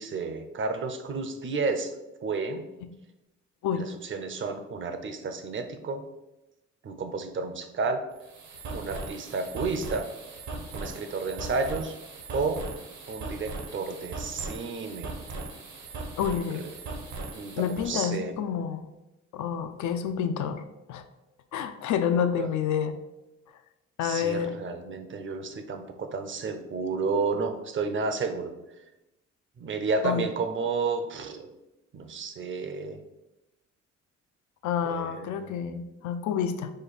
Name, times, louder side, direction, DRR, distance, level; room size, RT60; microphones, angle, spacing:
voice 1, 0.0-1.9 2.2-2.6 3.7-6.0 6.8-8.0 8.7-10.0 10.7-12.0 12.3-12.6 13.1-15.1 16.5-16.6 17.3-18.3 22.4-22.5 24.0-28.5 29.6-31.5 31.9-33.0 34.9-35.6, right 4 dB, 40° right, 7 dB, 0.6 m, -31 dB
sound 1, 8.1-17.9, right 3 dB, 70° right, 1.0 m, -39 dB
voice 2, 16.2-16.7 17.6-18.9 19.3-20.6 20.9-21.0 21.5-22.9 24.0-24.6 30.0-30.2 34.6-36.7, left 8 dB, 75° left, 8 dB, 0.5 m, -28 dB
5.1 x 2.3 x 4.0 m, 0.97 s
cardioid pair, 90°, 30 cm